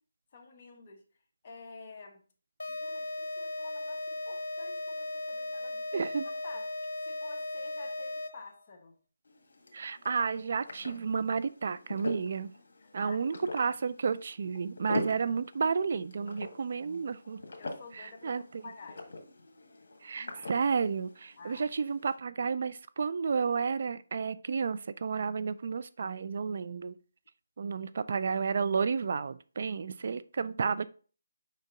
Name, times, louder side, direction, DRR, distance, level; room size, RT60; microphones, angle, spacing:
voice 1, 0.3-1.1 1.4-2.2 2.7-9.0 12.8-13.2 17.6-19.2 21.4-21.7 27.8-27.9, left 4 dB, 35° left, 1.2 m, -50 dB
sound 1, 2.6-8.6, left 2 dB, 85° left, 0.8 m, -37 dB
voice 2, 5.9-6.2 9.7-12.5 12.9-17.4 17.9-18.7 20.0-27.0 27.6-30.9, right 5 dB, 50° right, 0.4 m, -31 dB
sound 2, 9.3-22.2, left 2 dB, 60° left, 1.7 m, -44 dB
5.3 x 5.0 x 3.7 m
figure-of-eight pair, 165°, 0 cm